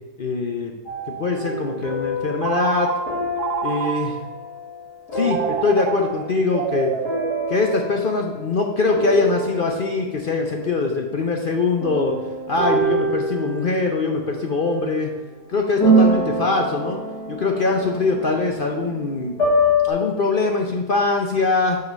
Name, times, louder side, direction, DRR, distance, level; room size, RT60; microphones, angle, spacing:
voice 1, 0.2-0.7 1.2-2.9 3.6-4.2 5.1-6.9 7.5-12.2 12.5-15.1 15.5-17.0 17.3-19.4 19.8-21.8, left 3 dB, 55° left, 2 dB, 0.6 m, -22 dB
sound 1, 0.9-6.3 7.0-8.6 8.9-10.2 11.8-14.9 15.8-19.9, right 1 dB, 70° left, 2.6 m, -25 dB
Telephone, 2.4-4.4 5.2-8.3, right 9 dB, 75° right, 1.0 m, -28 dB
6.3 x 4.9 x 6.3 m, 1.2 s
omnidirectional pair, 1.8 m